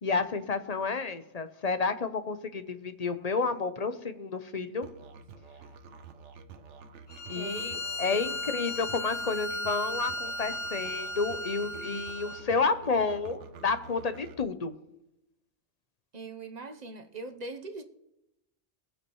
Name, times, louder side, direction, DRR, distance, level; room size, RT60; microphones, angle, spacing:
voice 1, 0.0-4.9 7.3-14.7, left 4 dB, 40° left, 0.8 m, -30 dB
Musical instrument, 4.8-14.4, right 5 dB, 80° right, 1.1 m, -49 dB
Bowed string instrument, 7.1-12.5, left 1 dB, 60° left, 2.2 m, -36 dB
voice 2, 7.3-7.8 16.1-17.8, right 3 dB, 40° right, 0.9 m, -41 dB
23.0 x 8.6 x 3.1 m
omnidirectional pair, 1.2 m